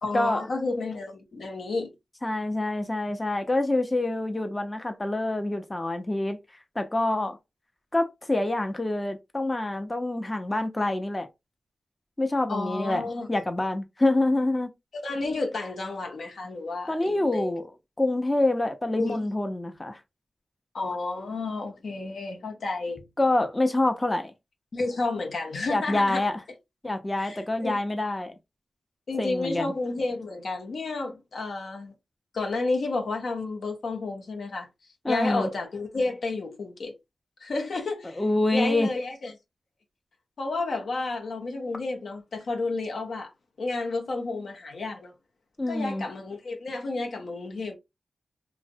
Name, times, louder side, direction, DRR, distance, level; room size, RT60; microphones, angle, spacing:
voice 1, 0.0-1.9 12.5-13.3 14.9-17.5 19.0-19.2 20.7-23.0 24.7-26.2 27.2-27.8 29.1-31.9 32.3-34.7 35.1-36.9 37.4-38.2 38.5-39.3 40.4-43.3 43.6-45.1 45.7-47.8, left 3 dB, 75° left, 0.6 m, -31 dB
voice 2, 2.2-6.4 6.8-7.4 7.9-11.3 12.2-14.7 16.9-17.7 18.0-20.0 23.2-24.3 25.7-26.4 26.8-28.3 29.2-29.7 35.0-35.5 38.2-38.9 45.6-46.0, left 2 dB, 25° left, 0.5 m, -26 dB
2.5 x 2.0 x 2.5 m
cardioid pair, 45°, 0 cm